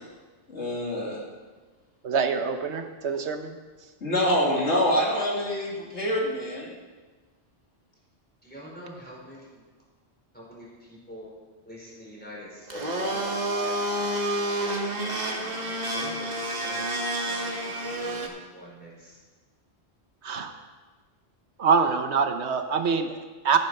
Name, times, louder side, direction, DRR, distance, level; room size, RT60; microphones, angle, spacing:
voice 1, 0.5-1.2 4.0-6.7, equal, 85° left, -4 dB, 3.3 m, -25 dB
voice 2, 2.0-3.6 20.2-20.5 21.6-23.6, right 5 dB, 75° right, 7 dB, 1.2 m, -25 dB
voice 3, 8.4-9.6 10.3-11.3 11.6-14.3 15.3-19.2, equal, 10° left, -5 dB, 4.6 m, -45 dB
Domestic sounds home sounds, 12.7-18.3, right 1 dB, 40° right, 1.4 m, -29 dB
14.0 x 10.0 x 5.4 m, 1.3 s
omnidirectional pair, 1.1 m